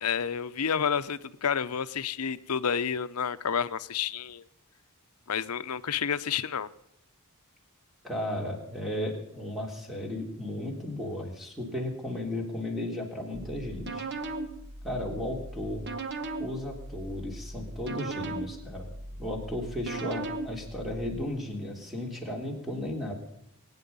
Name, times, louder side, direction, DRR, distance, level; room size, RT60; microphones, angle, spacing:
voice 1, 0.0-4.5 5.3-6.7, left 7 dB, 80° left, 13 dB, 0.7 m, -30 dB
voice 2, 8.0-14.0 14.8-15.8 16.4-18.9 19.2-23.1, left 1 dB, ahead, 1 dB, 3.2 m, -34 dB
sound 1, 13.3-21.2, right 2 dB, 50° right, 1.3 m, -38 dB
23.5 x 9.7 x 5.5 m, 0.78 s
head